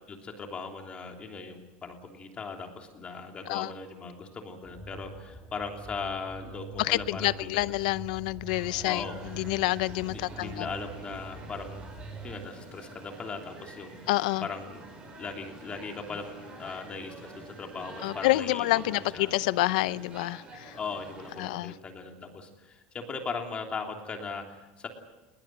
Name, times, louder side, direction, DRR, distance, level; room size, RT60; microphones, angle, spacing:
voice 1, 0.1-7.7 8.8-9.1 10.1-11.9 12.2-14.0 14.4-14.8 15.2-19.3 20.8-24.9, left 4 dB, 25° left, 3.2 m, -39 dB
sound 1, 4.6-12.4, right 3 dB, 5° left, 2.9 m, -45 dB
voice 2, 6.8-10.7 14.1-14.5 18.0-20.8 21.4-21.7, left 18 dB, 85° left, 0.7 m, -28 dB
sound 2, 8.5-21.5, right 3 dB, 25° right, 7.2 m, -47 dB
21.0 x 20.0 x 9.5 m
supercardioid pair, 135°, 4 cm